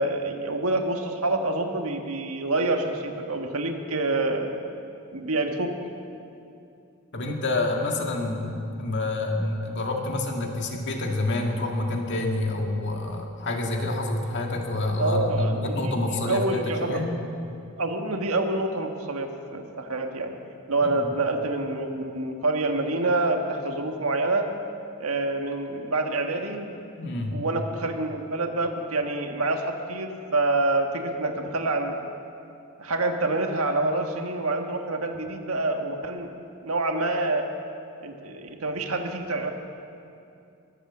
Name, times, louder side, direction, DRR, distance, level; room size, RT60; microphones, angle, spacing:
voice 1, 0.0-4.5 5.1-5.7 15.0-17.0 17.8-20.3 20.7-24.5 25.0-26.8 27.3-32.0 32.8-36.3 36.6-37.5 38.0-39.5, right 2 dB, 90° right, 4 dB, 1.4 m, -27 dB
voice 2, 7.1-17.2 20.8-21.0 27.0-27.4, left 2 dB, 55° left, 1 dB, 2.1 m, -28 dB
22.5 x 8.3 x 7.3 m, 2.6 s
head